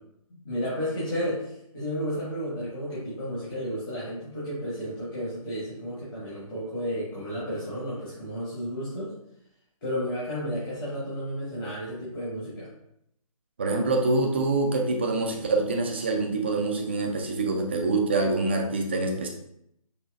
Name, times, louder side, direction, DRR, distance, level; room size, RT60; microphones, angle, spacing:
voice 1, 0.4-9.1 9.8-12.7, equal, 35° left, -9 dB, 1.4 m, -32 dB
voice 2, 13.6-19.3, right 3 dB, 20° right, 2 dB, 0.3 m, -25 dB
5.4 x 3.0 x 2.4 m, 0.77 s
figure-of-eight pair, 150°, 19 cm